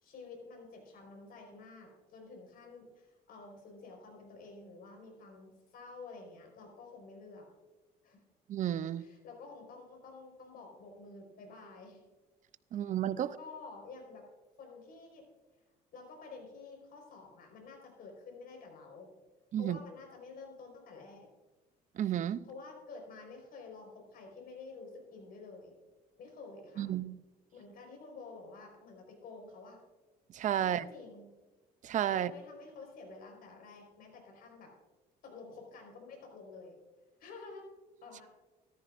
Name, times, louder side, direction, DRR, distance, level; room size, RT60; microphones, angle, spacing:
voice 1, 0.0-7.5 8.0-8.2 9.0-12.1 12.7-14.3 14.6-15.3 15.9-19.1 19.5-21.3 22.4-25.7 26.2-26.9 27.5-29.8 30.6-31.3 32.1-34.7 35.2-36.8 37.2-37.7 38.0-38.3, left 3 dB, 60° left, 4.5 m, -50 dB
voice 2, 8.5-9.0 12.7-13.3 19.5-19.8 22.0-22.4 26.8-27.2 30.3-30.9 31.8-32.3, right 11 dB, 50° right, 0.5 m, -32 dB
14.0 x 13.5 x 2.5 m
cardioid pair, 110°, 17 cm